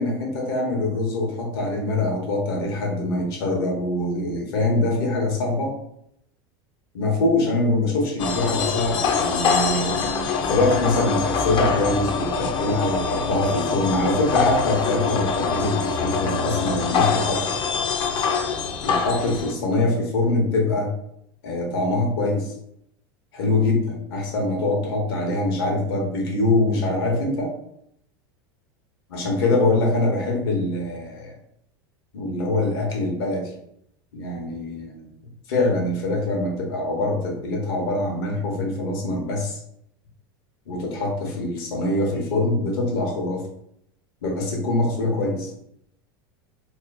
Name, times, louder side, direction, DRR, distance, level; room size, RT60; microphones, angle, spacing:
voice 1, 0.0-5.8 6.9-10.0 10.4-17.5 18.8-20.9 21.4-22.5 23.3-27.5 29.1-31.3 32.1-33.5 34.1-35.1 35.5-39.6 40.7-43.4 44.2-45.5, left 2 dB, 75° left, 0 dB, 1.2 m, -24 dB
sound 1, 8.2-19.5, left 5 dB, 40° left, 0.5 m, -24 dB
3.0 x 2.3 x 3.8 m, 0.75 s
hypercardioid pair, 105°, 13 cm